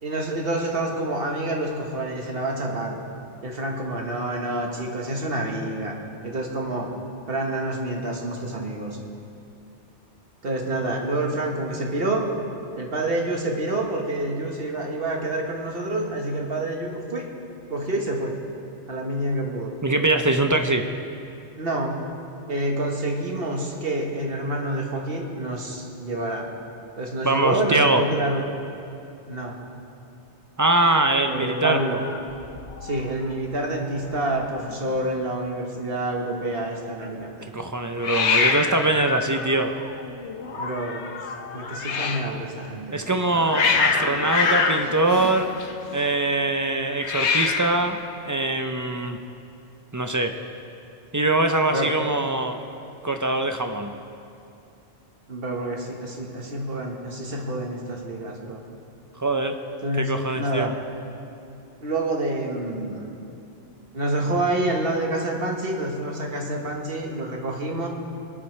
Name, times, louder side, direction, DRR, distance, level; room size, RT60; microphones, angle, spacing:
voice 1, 0.0-3.0 3.4-5.9 6.2-6.9 7.3-9.0 10.4-12.2 12.7-17.2 17.7-18.3 18.9-19.7 21.6-22.0 22.5-26.5 27.0-28.4 29.3-29.6 31.3-32.0 32.8-37.5 40.6-41.1 41.5-43.0 51.7-51.9 55.3-58.6 59.8-60.7 61.8-63.1 63.9-67.9, right 1 dB, 60° right, 0 dB, 1.6 m, -27 dB
voice 2, 19.8-20.8 27.2-28.0 30.6-31.8 37.5-39.7 42.9-45.5 45.9-49.2 49.9-50.3 51.1-52.6 53.0-53.9 59.2-59.6 60.0-60.7, right 2 dB, 30° right, 5 dB, 0.4 m, -23 dB
Hiss, 31.7-33.0 33.3-33.8 34.0-34.1 34.3-35.0 38.0-42.3 43.0-46.0 46.9-47.9, left 5 dB, 80° left, 1.1 m, -26 dB
24.0 x 8.5 x 3.2 m, 2.6 s
omnidirectional pair, 1.1 m